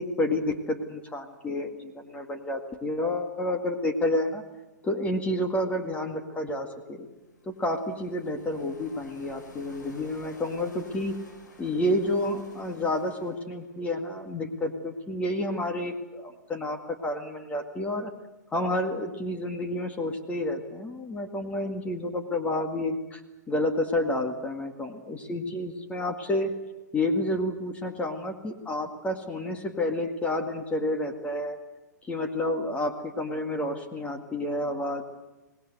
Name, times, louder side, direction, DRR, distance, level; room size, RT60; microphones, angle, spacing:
voice 1, 0.0-4.4 4.8-7.1 7.5-11.2 11.6-18.1 18.5-23.2 23.5-26.5 26.9-31.6 32.1-35.0, left 1 dB, 15° left, 4 dB, 2.1 m, -30 dB
sound 1, 6.9-15.0, left 1 dB, 80° left, 7.5 m, -52 dB
25.0 x 20.0 x 8.0 m, 1.1 s
hypercardioid pair, 120°, 10 cm